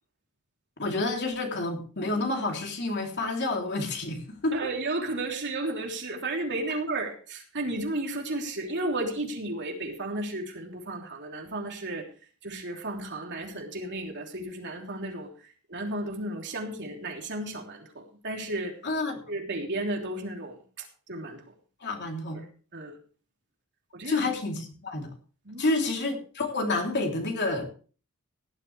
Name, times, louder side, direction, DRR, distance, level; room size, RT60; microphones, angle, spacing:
voice 1, 0.8-4.6 18.8-19.2 21.8-22.4 24.0-25.1 25.6-27.7, left 2 dB, 55° left, 2 dB, 3.2 m, -29 dB
voice 2, 4.5-12.1 12.4-18.8 19.3-21.4 22.3-22.4 22.7-23.0 23.9-24.2 25.4-25.7, right 2 dB, 55° right, 1 dB, 3.3 m, -33 dB
17.5 x 12.0 x 3.3 m, 0.39 s
head